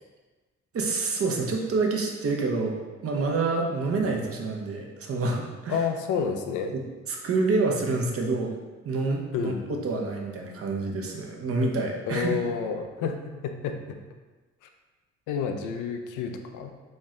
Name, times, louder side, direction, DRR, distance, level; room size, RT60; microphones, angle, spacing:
voice 1, 0.7-5.8 6.7-6.8 7.1-8.6 8.8-12.4, right 3 dB, 50° right, 1 dB, 0.7 m, -27 dB
voice 2, 5.7-6.8 9.3-9.8 12.1-14.0 15.3-16.8, left 6 dB, 85° left, 6 dB, 0.5 m, -30 dB
4.3 x 2.1 x 3.6 m, 1.3 s
cardioid pair, 90°, 30 cm